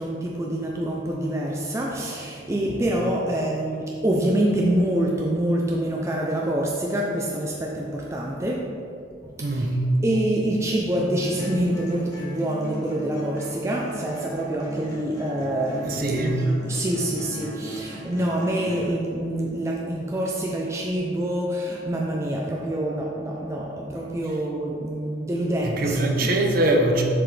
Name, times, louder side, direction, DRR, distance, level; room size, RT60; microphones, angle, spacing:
voice 1, 0.0-8.8 9.2-9.7 10.0-16.3 16.6-26.3, right 1 dB, 15° right, 0.4 m, -26 dB
voice 2, 2.5-2.8 9.4-10.0 15.8-16.5 24.2-24.4 25.6-27.0, right 1 dB, 50° right, 0.7 m, -23 dB
sound 1, 10.9-18.9, right 1 dB, 20° left, 1.4 m, -38 dB
7.4 x 4.8 x 3.3 m
head